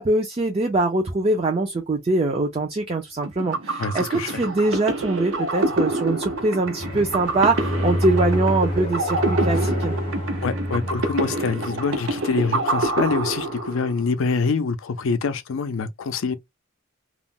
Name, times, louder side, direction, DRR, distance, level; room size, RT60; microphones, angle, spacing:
voice 1, 0.0-10.0, right 2 dB, 30° right, 0.5 m, -23 dB
sound 1, 3.2-14.1, right 2 dB, 70° right, 0.7 m, -27 dB
voice 2, 3.8-4.4 9.6-9.7 10.4-16.4, left 4 dB, 75° left, 0.4 m, -25 dB
sound 2, 6.8-11.9, equal, 30° left, 0.6 m, -27 dB
2.4 x 2.1 x 3.5 m
head